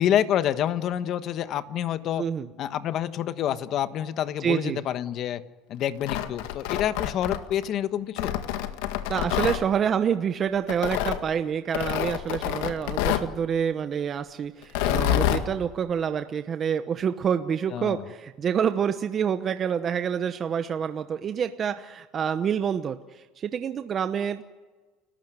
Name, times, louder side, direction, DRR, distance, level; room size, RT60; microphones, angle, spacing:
voice 1, 0.0-2.2 2.6-5.4 5.7-8.3 17.7-18.0, left 10 dB, 50° left, 12 dB, 1.3 m, -27 dB
voice 2, 2.2-2.5 4.4-4.8 9.1-24.5, right 7 dB, 35° right, 9 dB, 1.0 m, -27 dB
Tearing, 5.9-7.7 8.2-9.6 10.7-11.2 11.7-13.3 14.6-15.4, left 12 dB, 85° left, 1.8 m, -27 dB
30.0 x 15.5 x 9.3 m, 1.3 s
cardioid pair, 130°, 0 cm